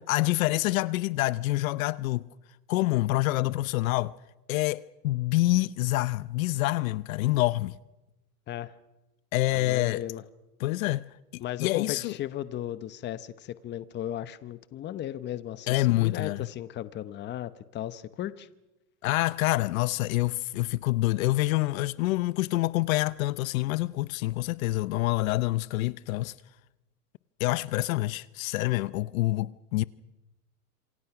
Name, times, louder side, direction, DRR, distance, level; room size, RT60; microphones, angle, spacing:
voice 1, 0.1-2.3 2.7-4.1 4.5-7.7 9.3-10.0 10.6-11.0 11.3-12.1 15.7-16.5 19.0-26.3 27.4-29.8, left 18 dB, 60° left, 0.8 m, -27 dB
voice 2, 9.5-10.2 11.4-18.5, left 12 dB, 25° left, 0.9 m, -36 dB
27.5 x 24.0 x 5.9 m
supercardioid pair, 135°, 46 cm